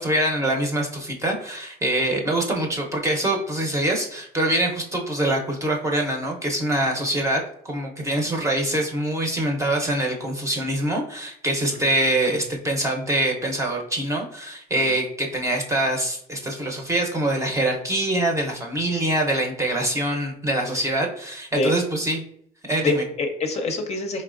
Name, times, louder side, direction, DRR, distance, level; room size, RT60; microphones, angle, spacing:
voice 1, 0.0-22.2 22.7-23.0, right 1 dB, 15° right, 1 dB, 0.7 m, -24 dB
voice 2, 22.8-24.2, left 3 dB, 40° left, 4 dB, 0.6 m, -26 dB
4.3 x 3.2 x 2.5 m, 0.66 s
cardioid pair, 110°, 17 cm